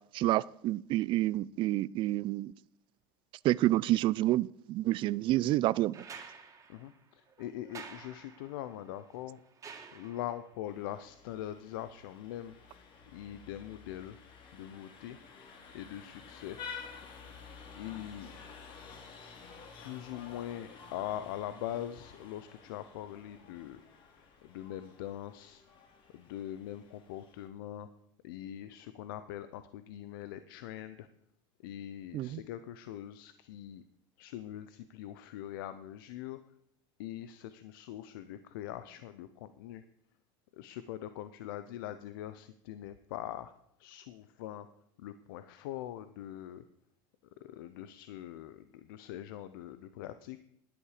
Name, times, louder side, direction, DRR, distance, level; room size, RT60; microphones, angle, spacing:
voice 1, 0.1-2.5 3.4-6.0 32.1-32.4, right 16 dB, 50° right, 0.4 m, -28 dB
sound 1, 5.9-10.5 12.1-12.2, right 6 dB, 30° right, 2.3 m, -51 dB
voice 2, 6.7-9.4 9.9-14.2 14.5-15.2 15.7-16.6 17.7-18.3 19.4-23.8 24.2-25.6 26.1-27.9 28.2-31.1 31.6-33.8 34.2-36.4 37.0-39.8 40.5-44.7 45.0-46.6 47.4-50.4, left 12 dB, 85° left, 0.6 m, -42 dB
Vehicle horn car horn honking, 10.7-27.5, left 5 dB, 50° left, 2.4 m, -51 dB
13.0 x 10.0 x 4.9 m
supercardioid pair, 120°, 11 cm